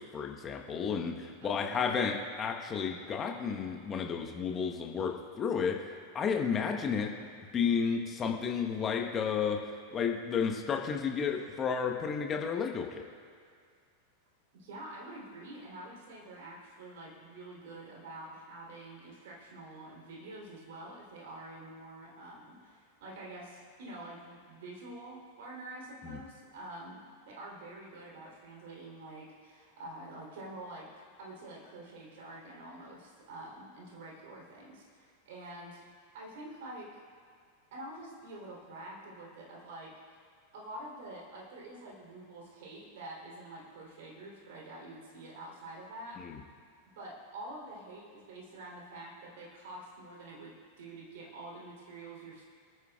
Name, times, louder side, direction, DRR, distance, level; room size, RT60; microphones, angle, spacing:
voice 1, 0.0-7.1 7.5-9.6 9.9-13.0 26.0-26.2 46.2-46.4, left 6 dB, 25° left, 2 dB, 1.2 m, -32 dB
voice 2, 1.4-2.0 14.5-35.8 36.1-36.9 37.7-40.0 40.5-46.2 46.9-52.5, right 1 dB, 55° right, -3 dB, 3.4 m, -47 dB
27.5 x 9.8 x 2.4 m, 2.1 s
figure-of-eight pair, 90°, 0 cm